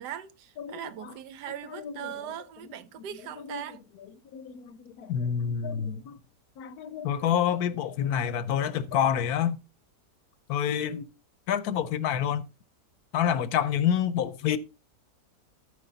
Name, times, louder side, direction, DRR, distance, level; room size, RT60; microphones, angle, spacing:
voice 1, 0.0-3.8, right 10 dB, 75° right, 1.3 m, -40 dB
voice 2, 0.6-1.1 1.8-2.1 3.4-3.7 4.3-6.2 6.6-9.6 10.5-11.1 11.5-12.4 13.1-14.6, left 9 dB, 70° left, 1.1 m, -28 dB
13.0 x 4.9 x 3.9 m
omnidirectional pair, 1.8 m